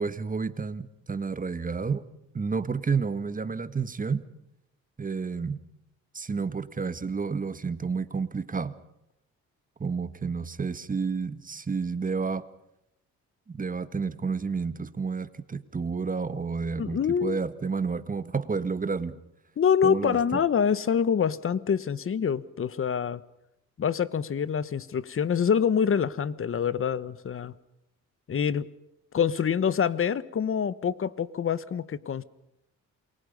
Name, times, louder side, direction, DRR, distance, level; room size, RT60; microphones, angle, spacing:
voice 1, 0.0-2.0 2.3-4.2 5.0-5.6 6.1-8.7 9.8-12.5 13.5-19.2 19.8-20.4, right 5 dB, 25° right, 13 dB, 1.7 m, -30 dB
voice 2, 16.8-17.4 19.6-23.2 23.8-27.5 28.3-28.7 29.1-32.2, left 7 dB, 45° left, 17 dB, 1.3 m, -26 dB
28.0 x 23.0 x 5.4 m, 0.84 s
cardioid pair, 90°, 30 cm